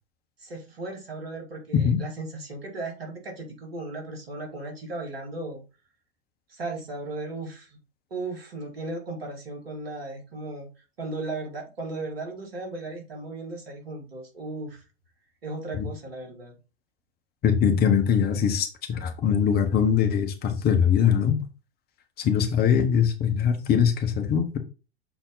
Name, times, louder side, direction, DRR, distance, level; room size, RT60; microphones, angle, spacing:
voice 1, 0.4-5.6 6.5-7.8 8.1-14.8 15.4-16.5, right 2 dB, 70° right, 2 dB, 2.6 m, -36 dB
voice 2, 17.4-21.4 22.2-24.6, left 7 dB, 30° left, 6 dB, 1.2 m, -22 dB
6.9 x 4.1 x 4.0 m, 0.31 s
figure-of-eight pair, 90°, 31 cm